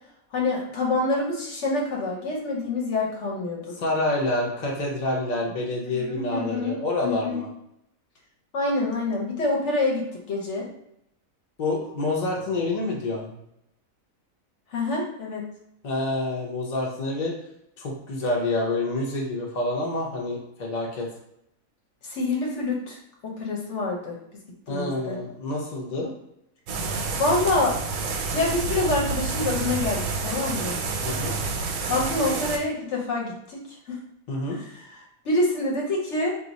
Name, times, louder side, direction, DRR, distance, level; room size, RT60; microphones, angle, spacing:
voice 1, 0.3-3.7 5.9-6.7 7.0-7.4 8.5-10.7 14.7-15.5 22.0-24.2 24.7-25.2 27.2-27.8 28.3-30.8 31.9-33.6 33.9-34.0 35.2-36.3, left 2 dB, 60° left, -1 dB, 1.0 m, -26 dB
voice 2, 3.8-7.5 11.6-13.3 15.8-17.3 17.8-21.1 24.7-26.1 31.0-31.3 34.3-34.6, left 2 dB, 45° left, -2 dB, 0.6 m, -27 dB
sound 1, 26.7-32.6, right 4 dB, 85° right, 1.0 m, -29 dB
2.4 x 2.4 x 3.9 m, 0.80 s
omnidirectional pair, 1.4 m